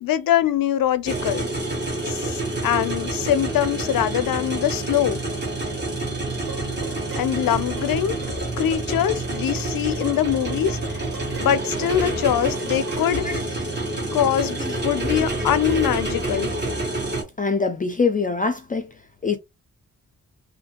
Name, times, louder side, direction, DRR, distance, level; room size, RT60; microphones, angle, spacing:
voice 1, 0.0-1.5 2.0-2.4 2.6-5.2 7.2-8.2 8.6-11.0 11.4-13.3 14.1-14.6 14.8-16.5, left 10 dB, 90° left, 0.5 m, -23 dB
sound 1, 1.0-17.2, right 2 dB, 30° right, 1.3 m, -28 dB
Dishes pots and pans, 6.5-13.3, right 6 dB, 90° right, 0.9 m, -42 dB
voice 2, 14.4-15.5 17.4-19.4, left 4 dB, 25° left, 0.4 m, -26 dB
2.7 x 2.5 x 2.8 m
wide cardioid pair, 105°, 33 cm